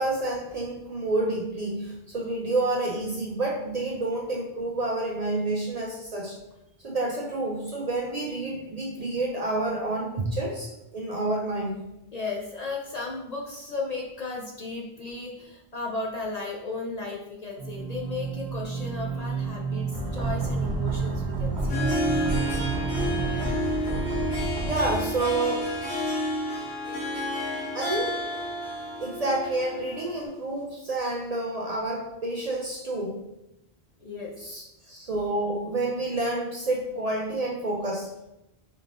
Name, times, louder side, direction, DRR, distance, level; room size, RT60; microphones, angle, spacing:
voice 1, 0.0-6.4 6.8-11.8 23.6-23.9 24.6-25.7 27.7-28.2 29.0-33.2 34.4-38.1, right 2 dB, 50° right, -1 dB, 0.5 m, -29 dB
voice 2, 12.1-21.8 26.6-26.7 34.0-34.3, left 3 dB, 50° left, -1 dB, 0.5 m, -35 dB
sound 1, 17.6-23.6, right 5 dB, 65° right, 1.3 m, -31 dB
sound 2, 19.9-26.0 26.3-26.4, right 1 dB, 80° right, 1.0 m, -32 dB
Harp, 21.5-30.3, equal, 70° left, 1.7 m, -30 dB
4.2 x 3.6 x 2.5 m, 0.93 s
omnidirectional pair, 1.1 m